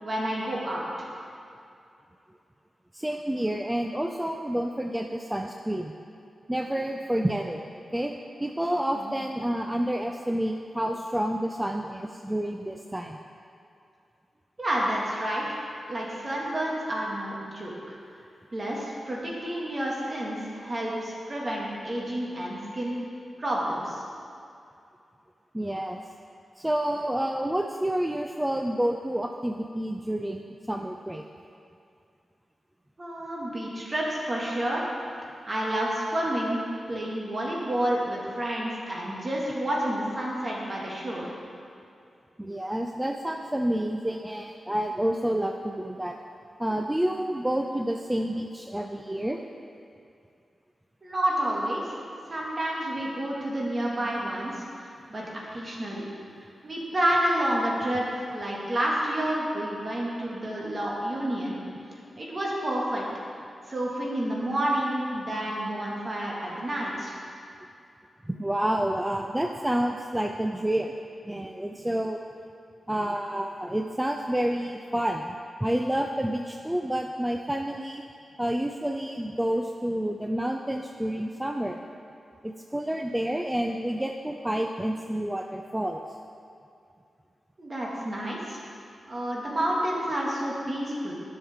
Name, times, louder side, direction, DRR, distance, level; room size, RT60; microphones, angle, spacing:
voice 1, 0.0-1.1 9.0-9.1 14.6-15.6 15.9-18.0 18.5-23.0 23.4-24.0 33.0-34.9 35.5-36.6 36.9-41.3 51.0-52.0 52.3-56.0 56.6-61.6 62.2-63.0 63.7-67.2 87.6-88.6 89.1-91.1, right 1 dB, 45° right, -4 dB, 2.1 m, -29 dB
voice 2, 2.9-5.9 6.5-8.1 8.4-13.2 25.5-26.0 26.6-31.2 42.4-46.2 46.6-49.4 68.2-70.9 71.2-72.2 72.9-78.0 78.4-81.8 82.4-86.0, right 1 dB, 10° right, 3 dB, 0.5 m, -29 dB
10.5 x 6.3 x 3.7 m, 2.5 s
cardioid pair, 45°, 0 cm